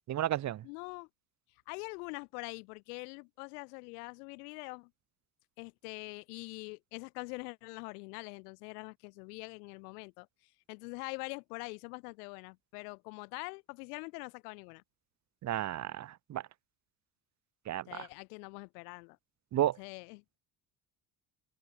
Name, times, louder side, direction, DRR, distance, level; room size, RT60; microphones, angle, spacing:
voice 1, 0.1-0.6 15.4-16.4 17.7-17.8 19.5-19.8, right 12 dB, 40° right, 0.6 m, -32 dB
voice 2, 0.6-1.1 1.7-4.9 5.6-10.3 10.7-14.8 17.9-19.2 19.8-20.2, left 31 dB, 90° left, 7.1 m, -44 dB
supercardioid pair, 70°, 45 cm